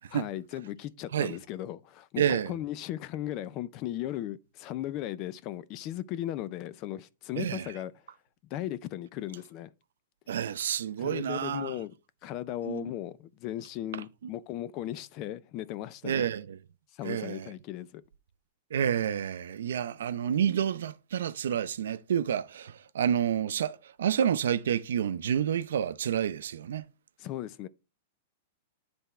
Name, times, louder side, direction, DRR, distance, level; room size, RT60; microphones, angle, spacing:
voice 1, 0.1-7.9 8.5-9.7 11.0-11.9 12.2-16.3 16.9-18.0 27.2-27.7, left 13 dB, 30° left, 0.4 m, -37 dB
voice 2, 2.2-2.5 7.4-7.7 10.3-11.7 12.7-12.9 16.0-16.6 17.0-17.5 18.7-26.8, right 9 dB, 85° right, 0.6 m, -29 dB
10.0 x 3.5 x 4.3 m
supercardioid pair, 165°, 0 cm